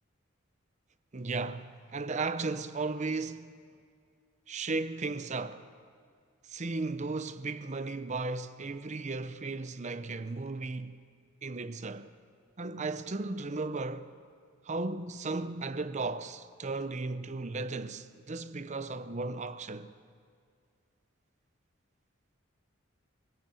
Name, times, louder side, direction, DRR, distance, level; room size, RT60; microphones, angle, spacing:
voice 1, 1.1-3.6 4.5-5.6 6.5-11.0 11.4-12.1 12.6-14.1 14.6-19.9, right 3 dB, 35° right, 0.7 m, -35 dB
23.5 x 17.0 x 6.9 m
head